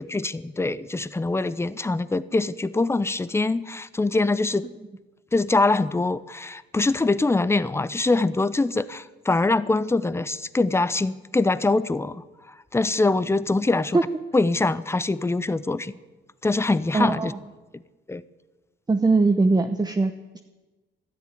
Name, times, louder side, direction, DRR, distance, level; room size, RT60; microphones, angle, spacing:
voice 1, 0.0-4.7 5.3-12.2 12.7-14.0 14.3-15.9 16.4-17.3 18.1-18.2, left 3 dB, 15° left, 16 dB, 0.7 m, -23 dB
voice 2, 16.9-17.4 18.9-20.1, right 3 dB, 20° right, 8 dB, 0.9 m, -20 dB
12.5 x 10.5 x 9.8 m, 1.2 s
cardioid pair, 90°, 20 cm